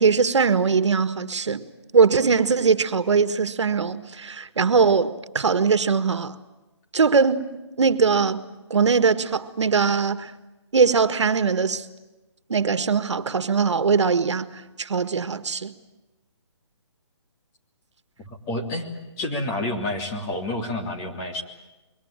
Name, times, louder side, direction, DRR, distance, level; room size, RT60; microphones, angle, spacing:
voice 1, 0.0-1.7 1.9-6.3 6.9-8.4 8.7-10.3 10.7-11.9 12.5-14.5 14.8-15.7, right 5 dB, 80° right, 1.7 m, -21 dB
voice 2, 18.2-18.9 19.2-21.4, left 1 dB, 20° left, 3.3 m, -29 dB
26.5 x 23.5 x 8.9 m
hypercardioid pair, 160°, 15 cm